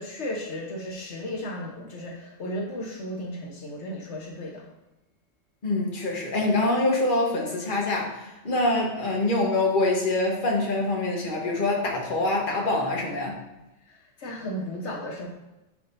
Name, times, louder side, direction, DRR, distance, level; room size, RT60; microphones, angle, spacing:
voice 1, 0.0-4.7 14.2-15.3, left 1 dB, 80° left, -1 dB, 1.3 m, -34 dB
voice 2, 5.6-13.4, left 2 dB, 50° left, -1 dB, 1.4 m, -25 dB
10.5 x 3.7 x 2.6 m, 0.99 s
omnidirectional pair, 1.2 m